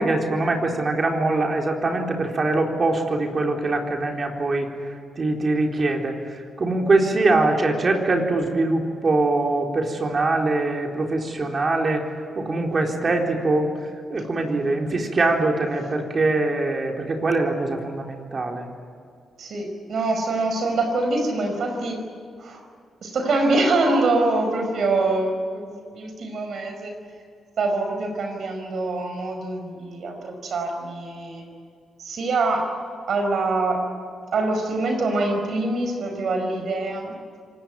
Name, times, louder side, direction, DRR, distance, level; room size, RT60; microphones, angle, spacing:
voice 1, 0.0-4.7 5.2-12.0 12.4-13.7 14.1-18.7, right 2 dB, 45° right, 2 dB, 4.1 m, -23 dB
voice 2, 19.4-22.0 22.4-22.6 23.0-26.9 27.6-31.4 32.0-32.7 33.1-33.8 34.3-37.1, right 2 dB, 65° right, 4 dB, 4.8 m, -24 dB
26.0 x 19.0 x 9.4 m, 2.3 s
supercardioid pair, 50°, 0 cm